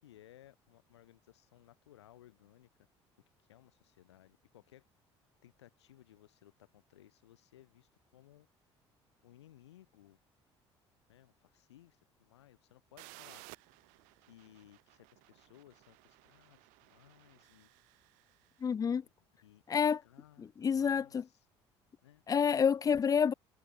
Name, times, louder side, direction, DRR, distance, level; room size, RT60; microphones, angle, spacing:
voice 1, 0.0-2.7 3.5-4.8 5.4-8.5 9.2-10.2 11.1-13.5 14.3-17.7 19.0-19.1 19.4-21.5 22.0-22.2, left 13 dB, 80° left, 6.2 m, -61 dB
sound 1, 13.0-18.6, right 30 dB, 70° right, 2.9 m, -58 dB
voice 2, 18.6-19.0 19.7-20.0 20.4-21.2 22.3-23.3, left 7 dB, 25° left, 0.4 m, -28 dB
hypercardioid pair, 55°, 14 cm